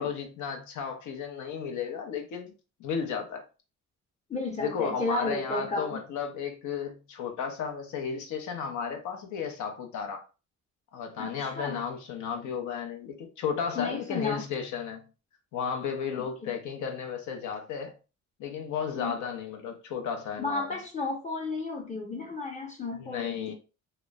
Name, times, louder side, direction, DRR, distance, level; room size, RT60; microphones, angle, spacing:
voice 1, 0.0-2.5 2.8-3.5 4.6-10.2 10.9-15.0 15.5-17.9 18.4-20.8 23.0-23.5, left 7 dB, 75° left, 0.6 m, -33 dB
voice 2, 4.3-6.0 11.2-11.8 13.8-14.4 16.4-16.5 18.9-19.2 20.4-23.5, left 2 dB, 25° left, 0.6 m, -33 dB
2.9 x 2.0 x 2.2 m
cardioid pair, 90°, 30 cm